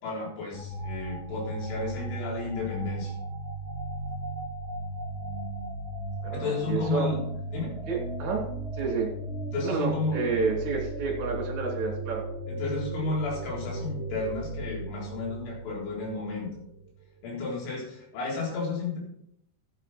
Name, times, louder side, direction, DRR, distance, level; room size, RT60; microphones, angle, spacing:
voice 1, 0.0-3.1 6.3-7.2 7.5-7.8 9.5-10.4 12.5-16.5 17.2-19.0, left 3 dB, 75° left, -4 dB, 6.3 m, -32 dB
sound 1, 0.5-16.9, right 2 dB, 10° right, 0.9 m, -36 dB
voice 2, 6.2-7.1 7.9-8.4 8.8-9.1 9.6-12.2, right 4 dB, 35° right, 0 dB, 2.7 m, -30 dB
14.0 x 8.7 x 4.3 m, 0.74 s
omnidirectional pair, 5.5 m